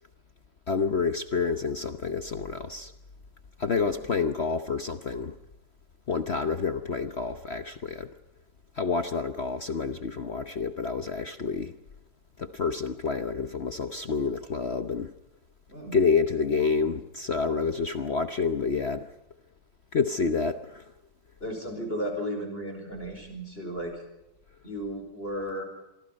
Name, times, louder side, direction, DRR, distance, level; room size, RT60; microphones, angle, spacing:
voice 1, 0.7-2.9 3.6-5.3 6.1-8.1 8.8-11.7 12.4-15.1 15.9-19.1 19.9-20.8, left 5 dB, 50° left, 9 dB, 0.8 m, -28 dB
voice 2, 15.7-16.0 21.4-24.0 24.6-25.6, equal, 25° left, 4 dB, 5.1 m, -34 dB
27.0 x 23.5 x 5.3 m, 0.91 s
omnidirectional pair, 2.2 m